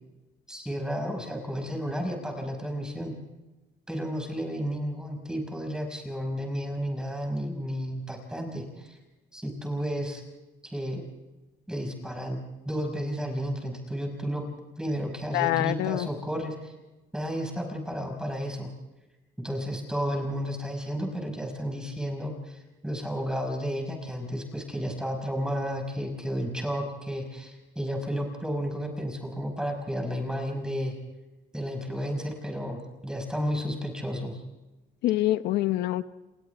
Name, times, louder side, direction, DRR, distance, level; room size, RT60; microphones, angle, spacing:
voice 1, 0.5-3.1 3.9-9.0 9.3-10.2 10.6-11.0 11.7-12.4 12.7-14.4 14.8-16.7 17.1-18.7 19.4-31.0 31.5-34.4, equal, 5° right, 2 dB, 5.6 m, -32 dB
voice 2, 15.3-16.1 35.0-36.0, left 15 dB, 85° left, 12 dB, 1.0 m, -25 dB
29.5 x 26.5 x 3.5 m, 1.1 s
cardioid pair, 110°, 17 cm